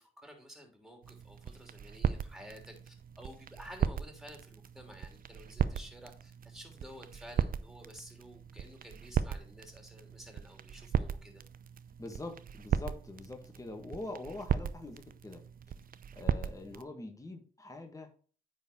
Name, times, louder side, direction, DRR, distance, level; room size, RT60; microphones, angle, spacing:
voice 1, 0.0-11.4, equal, ahead, 3 dB, 3.0 m, -52 dB
sound 1, 1.0-16.8, right 8 dB, 50° right, 0.6 m, -37 dB
voice 2, 12.0-15.4 16.1-18.1, left 2 dB, 20° left, 3 dB, 1.7 m, -44 dB
9.3 x 4.3 x 4.4 m, 0.40 s
cardioid pair, 65°, 18 cm